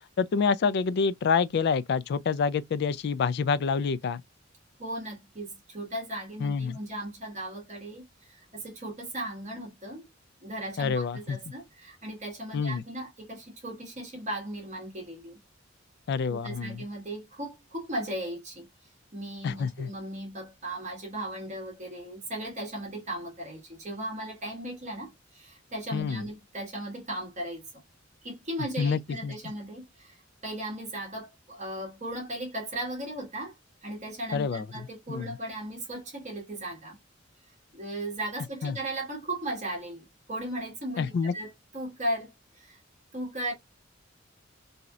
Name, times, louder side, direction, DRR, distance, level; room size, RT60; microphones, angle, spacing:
voice 1, 0.2-4.2 6.4-6.8 10.8-11.4 12.5-12.8 16.1-16.8 19.4-19.9 25.9-26.2 28.8-29.3 34.3-34.6 35.1-35.2 38.6-38.7 41.0-41.3, left 5 dB, 55° left, 0.3 m, -27 dB
voice 2, 4.8-10.1 10.4-15.4 16.3-18.7 19.1-27.8 28.2-33.5 33.8-37.0 37.7-42.8 43.1-43.5, right 1 dB, 40° right, 1.4 m, -37 dB
3.0 x 2.8 x 2.3 m
head